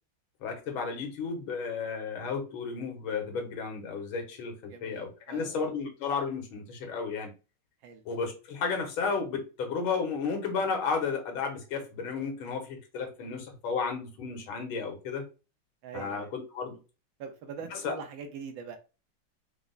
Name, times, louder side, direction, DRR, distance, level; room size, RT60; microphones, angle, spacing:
voice 1, 0.4-7.3 8.1-15.2 15.9-16.8 17.7-18.0, left 5 dB, 90° left, 1.9 m, -33 dB
voice 2, 4.7-5.7 7.8-8.0 15.8-16.3 17.2-18.8, right 6 dB, 75° right, 1.5 m, -43 dB
4.6 x 2.1 x 3.9 m
omnidirectional pair, 2.2 m